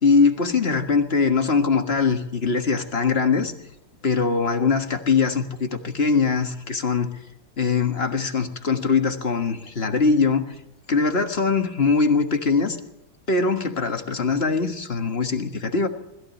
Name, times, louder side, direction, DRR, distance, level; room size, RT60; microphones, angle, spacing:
voice 1, 0.0-3.5 4.0-7.2 7.6-10.5 10.9-12.8 13.3-15.9, left 4 dB, 35° left, 6 dB, 1.7 m, -22 dB
20.5 x 15.0 x 8.5 m, 0.84 s
omnidirectional pair, 2.1 m